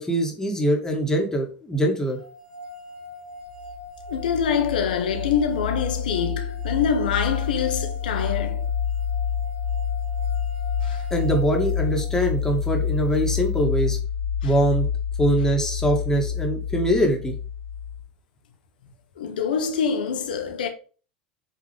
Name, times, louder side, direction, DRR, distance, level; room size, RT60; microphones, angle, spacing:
voice 1, 0.0-2.2 11.1-14.0 14.4-14.9 15.2-17.3, right 1 dB, 10° left, 2.4 m, -23 dB
sound 1, 2.2-12.3, left 1 dB, 60° right, 4.0 m, -42 dB
sound 2, 3.6-18.1, left 7 dB, 85° right, 1.9 m, -28 dB
voice 2, 4.1-8.7 10.8-11.0 14.4-14.5 19.2-20.7, left 7 dB, 70° left, 1.5 m, -25 dB
8.5 x 4.8 x 3.5 m
figure-of-eight pair, 80°, 5 cm